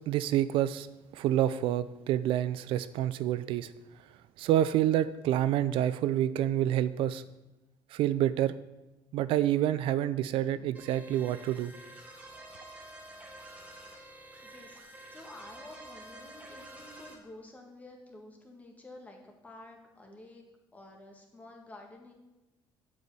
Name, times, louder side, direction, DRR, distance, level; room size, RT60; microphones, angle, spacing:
voice 1, 0.1-0.9 1.1-3.7 4.4-7.2 7.9-8.5 9.1-11.7, right 12 dB, 70° right, 14 dB, 0.4 m, -28 dB
sound 1, 10.7-17.1, right 1 dB, 15° right, 1.5 m, -49 dB
voice 2, 14.4-20.4 20.7-22.1, left 2 dB, 15° left, 1 dB, 1.6 m, -50 dB
7.8 x 5.3 x 6.8 m, 1.0 s
cardioid pair, 140°, 9 cm